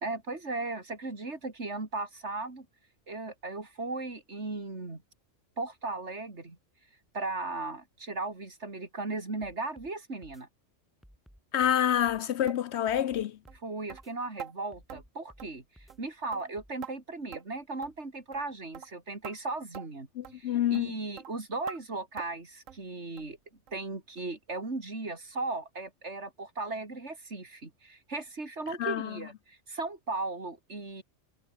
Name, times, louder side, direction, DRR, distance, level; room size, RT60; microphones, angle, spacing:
voice 1, 0.0-2.7 3.1-5.0 5.6-6.6 7.1-10.5 13.6-20.1 20.3-23.4 23.7-31.0, right 3 dB, 60° right, 3.7 m, -37 dB
sound 1, 9.4-9.9 10.2-10.4 11.0-11.8 12.1-12.3 12.9-13.6 13.9-14.1 14.7-15.5 15.8-16.0 16.6-16.7, equal, ahead, 5.0 m, -56 dB
voice 2, 11.5-13.4 20.2-20.9 28.8-29.2, left 10 dB, 65° left, 0.8 m, -27 dB
sound 2, 12.5-12.6 13.0-13.1 13.5-13.6 13.9-14.0 14.4-14.5 14.9-15.0 15.4-15.6 15.9-16.1 16.3-16.9 17.3-17.6 17.8-18.0 18.3-18.5 18.7-18.9 19.2-19.4 19.7-19.9 20.2-20.4 20.7-20.9 21.2-21.3 21.7-21.8 22.2-22.4 22.7-22.8 23.2-23.3 23.7-23.8 24.2-24.3 24.7-24.8, right 9 dB, 85° right, 1.4 m, -45 dB
omnidirectional pair, 1.3 m